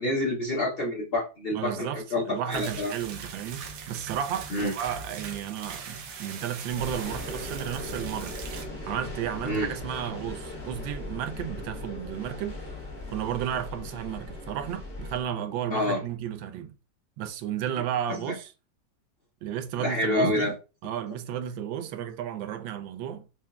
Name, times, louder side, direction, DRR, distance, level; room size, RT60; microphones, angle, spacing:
voice 1, 0.0-2.9 4.5-4.7 9.4-9.7 15.7-16.0 18.3-18.4 19.8-20.5, left 1 dB, 85° left, 0.5 m, -27 dB
voice 2, 1.5-8.4 8.9-12.6 13.1-16.7 17.2-18.5 19.4-20.5 20.8-23.3, right 10 dB, 90° right, 1.3 m, -33 dB
sound 1, 2.5-8.7, right 6 dB, 65° right, 0.9 m, -40 dB
sound 2, 6.8-15.2, left 2 dB, 50° left, 1.6 m, -39 dB
5.9 x 2.2 x 2.2 m
omnidirectional pair, 2.0 m